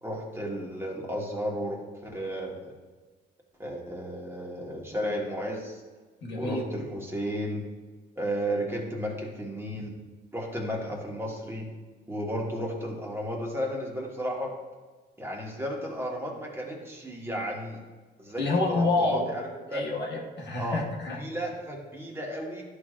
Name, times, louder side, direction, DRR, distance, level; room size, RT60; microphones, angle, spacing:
voice 1, 0.0-2.7 3.6-5.8 6.3-7.6 8.2-9.9 10.3-11.7 12.1-14.5 15.2-17.8 18.2-19.8 20.6-20.8 21.2-22.6, equal, 10° right, -2 dB, 1.6 m, -33 dB
voice 2, 6.2-6.6 18.4-19.2 19.7-21.2, left 2 dB, 60° left, -1 dB, 1.4 m, -28 dB
11.0 x 4.8 x 2.5 m, 1.4 s
cardioid pair, 90°, 20 cm